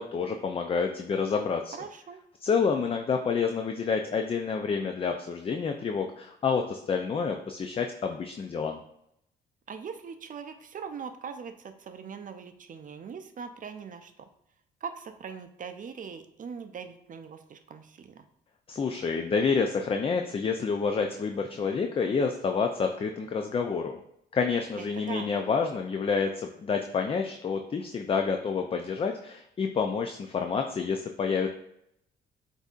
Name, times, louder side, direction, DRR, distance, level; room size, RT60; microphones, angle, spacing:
voice 1, 0.0-1.7 2.4-8.8 18.7-24.0 24.3-31.5, left 5 dB, 30° left, 4 dB, 0.4 m, -28 dB
voice 2, 1.7-2.2 9.7-14.3 14.8-18.2 24.7-25.4, right 6 dB, 40° right, 8 dB, 0.5 m, -41 dB
7.9 x 2.7 x 2.4 m, 0.76 s
cardioid pair, 90°, 20 cm